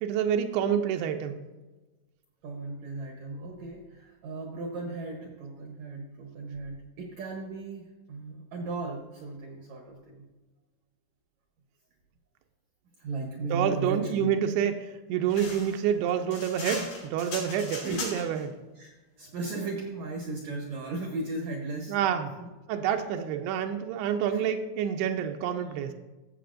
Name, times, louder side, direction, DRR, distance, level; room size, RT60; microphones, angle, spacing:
voice 1, 0.0-1.5 13.5-18.6 21.9-22.4 22.7-25.9, right 8 dB, 90° right, 5 dB, 2.6 m, -28 dB
voice 2, 2.4-10.2 13.0-14.3 17.8-18.0 18.7-21.9 22.4-22.5 24.3-24.5, right 3 dB, 75° right, 1 dB, 1.7 m, -36 dB
sound 1, 15.3-18.4, left 3 dB, 90° left, 4.6 m, -38 dB
14.5 x 7.7 x 2.5 m, 1.1 s
omnidirectional pair, 4.6 m